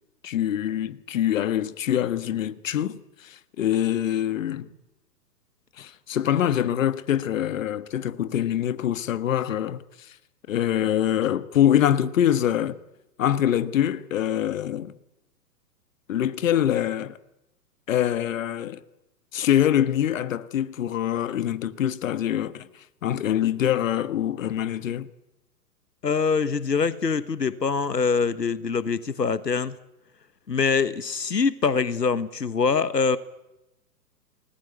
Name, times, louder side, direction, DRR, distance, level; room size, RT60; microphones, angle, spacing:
voice 1, 0.2-4.7 5.8-9.8 10.5-12.8 13.2-14.9 16.1-17.2 17.9-18.8 19.3-22.7 23.0-25.1, left 11 dB, 50° left, 1.6 m, -24 dB
voice 2, 26.0-29.8 30.5-33.2, left 5 dB, 80° left, 1.4 m, -24 dB
28.5 x 20.0 x 9.5 m
figure-of-eight pair, 115°, 49 cm